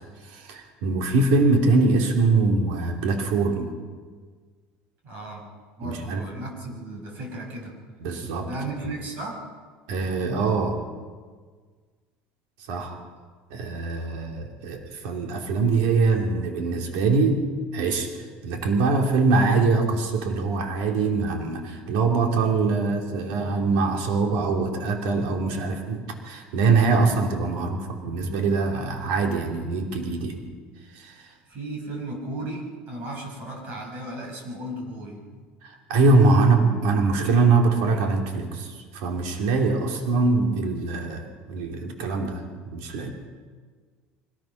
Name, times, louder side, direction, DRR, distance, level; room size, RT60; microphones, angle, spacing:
voice 1, 0.3-3.7 5.8-6.3 8.0-8.5 9.9-10.8 12.7-13.0 13.5-17.4 17.7-30.5 30.9-31.3 35.6-43.1, right 3 dB, 75° right, 2 dB, 3.0 m, -23 dB
voice 2, 5.0-5.5 5.8-7.7 8.4-9.5 31.5-35.2, right 1 dB, 45° right, 1 dB, 5.7 m, -35 dB
24.5 x 18.5 x 5.9 m, 1.6 s
cardioid pair, 170°, 4 cm